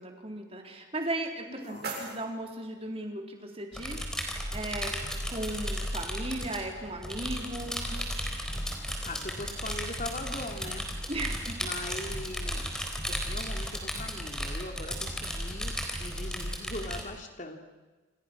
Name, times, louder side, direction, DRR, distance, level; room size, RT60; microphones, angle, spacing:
voice 1, 0.0-4.9 5.3-8.2 11.1-11.6, right 1 dB, 30° right, 3 dB, 3.9 m, -37 dB
sound 1, 1.1-3.1, right 3 dB, 55° right, 7.1 m, -42 dB
voice 2, 1.5-1.9 9.0-10.9 11.6-15.7 16.0-17.6, left 2 dB, 40° left, 5 dB, 3.0 m, -40 dB
sound 2, 3.7-17.0, equal, 5° left, 4.0 m, -35 dB
29.0 x 28.5 x 6.3 m, 1.2 s
head